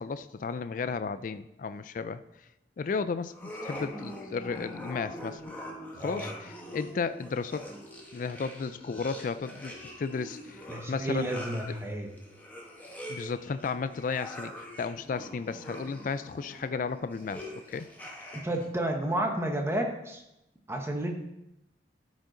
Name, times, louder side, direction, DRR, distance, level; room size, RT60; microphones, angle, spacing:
voice 1, 0.0-2.2 2.8-3.3 3.6-5.5 6.0-7.7 8.1-9.7 10.0-11.3 11.7-11.8 13.1-17.4 17.7-17.9, left 5 dB, 45° left, 13 dB, 0.3 m, -34 dB
sound 1, 3.3-18.7, left 1 dB, 10° left, 1.2 m, -44 dB
voice 2, 10.7-12.1 18.3-20.2 20.7-21.1, right 1 dB, 15° right, 3 dB, 0.9 m, -31 dB
12.5 x 5.2 x 3.8 m, 0.88 s
head